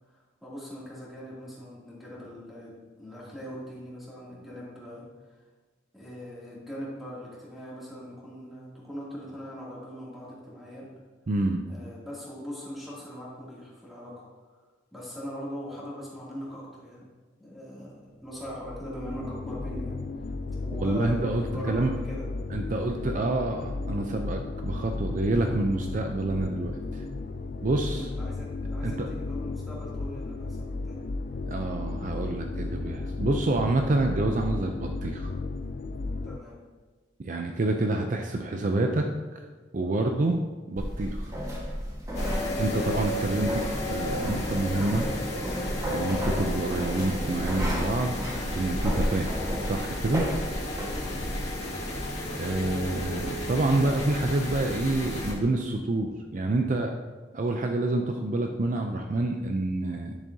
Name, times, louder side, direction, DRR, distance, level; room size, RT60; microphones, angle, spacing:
voice 1, 0.1-5.1 5.9-10.9 11.7-14.2 14.5-14.6 14.9-17.1 17.4-20.0 20.6-22.3 27.8-31.0 36.2-36.6 40.0-40.2 50.9-51.2, equal, ahead, -7 dB, 2.6 m, -41 dB
voice 2, 11.3-11.6 20.8-21.9 22.5-27.0 27.6-28.1 28.8-29.1 31.4-35.3 37.2-39.1 39.7-40.4 40.7-41.3 42.6-45.1 45.9-48.2 48.5-50.3 52.3-56.9 57.3-60.2, right 2 dB, 45° right, 4 dB, 0.5 m, -28 dB
sound 1, 18.4-36.4, left 3 dB, 55° left, 0.4 m, -34 dB
sound 2, 40.8-51.4, equal, 20° right, 1.4 m, -33 dB
sound 3, 42.1-55.3, left 1 dB, 40° left, 1.9 m, -33 dB
10.5 x 7.2 x 2.7 m, 1.4 s
head